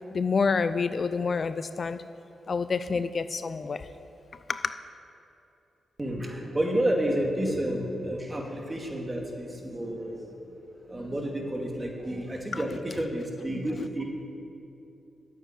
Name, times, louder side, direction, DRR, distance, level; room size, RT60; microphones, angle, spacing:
voice 1, 0.1-2.0 2.5-3.8 4.5-4.6 12.5-12.6, left 5 dB, 55° left, 12 dB, 0.4 m, -27 dB
voice 2, 6.0-10.3 10.9-14.0, right 1 dB, 25° right, 1 dB, 2.4 m, -30 dB
8.9 x 8.0 x 9.1 m, 2.9 s
supercardioid pair, 45°, 0 cm